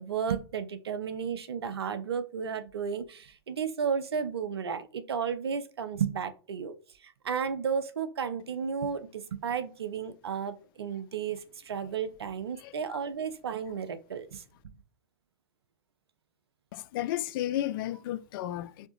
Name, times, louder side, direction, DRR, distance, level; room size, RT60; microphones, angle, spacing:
voice 1, 0.0-6.7 7.0-14.4, right 7 dB, 85° right, 0.7 m, -33 dB
voice 2, 16.7-18.9, left 13 dB, 60° left, 0.4 m, -33 dB
4.4 x 3.5 x 3.0 m
hypercardioid pair, 100°, 13 cm